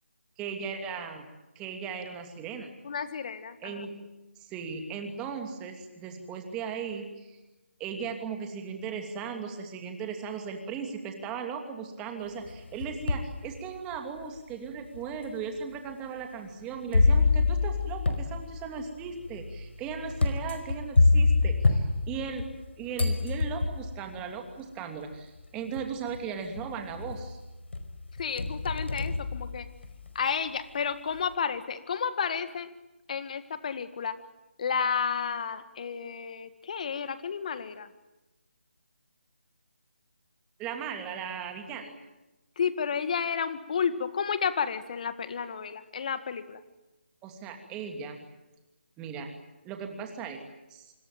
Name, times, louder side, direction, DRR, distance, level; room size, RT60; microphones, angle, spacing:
voice 1, 0.4-1.3 1.5-2.7 3.6-4.0 4.4-7.4 7.8-22.5 22.8-27.4 40.6-41.9 47.2-48.2 49.0-49.3 49.6-50.4 50.7-50.9, right 6 dB, 10° right, 5 dB, 2.7 m, -37 dB
voice 2, 2.8-3.7 28.2-29.7 30.2-32.7 33.1-34.1 34.6-37.9 42.6-46.6, left 6 dB, 40° left, 12 dB, 1.9 m, -31 dB
sound 1, 12.5-13.4 13.9-14.0 14.9-15.0 16.9-22.6 23.0-24.0 25.1-25.2 25.8-26.2 26.6-27.3 27.7-30.1, left 3 dB, 70° left, 5.0 m, -26 dB
26.0 x 24.5 x 9.1 m, 1.1 s
figure-of-eight pair, 160°, 6 cm